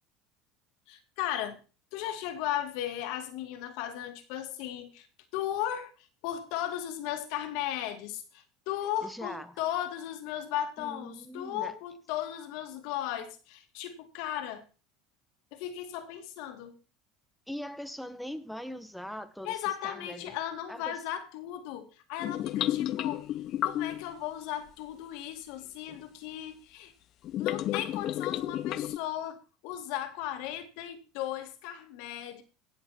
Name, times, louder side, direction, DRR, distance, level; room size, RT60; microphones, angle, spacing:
voice 1, 0.9-1.6 1.9-5.1 5.3-14.6 15.5-16.8 19.4-23.3 23.6-26.9 27.4-32.4, left 11 dB, 70° left, 8 dB, 2.1 m, -36 dB
voice 2, 9.0-9.5 10.8-11.7 17.5-20.4 20.7-21.0, equal, ahead, 8 dB, 1.0 m, -41 dB
sound 1, 22.2-24.1 25.9-26.0 27.2-29.0, left 13 dB, 50° left, 0.5 m, -31 dB
16.5 x 7.5 x 4.3 m, 0.34 s
supercardioid pair, 125°, 0 cm